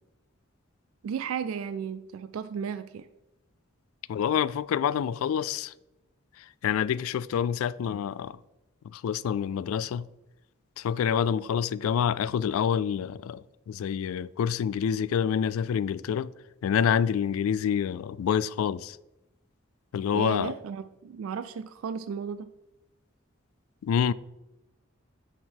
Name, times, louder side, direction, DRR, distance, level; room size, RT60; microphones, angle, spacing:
voice 1, 1.0-3.1 20.1-22.5, right 7 dB, 80° right, 0.3 m, -34 dB
voice 2, 4.1-5.7 6.6-8.4 8.9-10.1 10.8-16.3 16.6-19.0 19.9-20.5 23.8-24.1, left 8 dB, 85° left, 0.3 m, -27 dB
8.8 x 4.7 x 4.5 m
head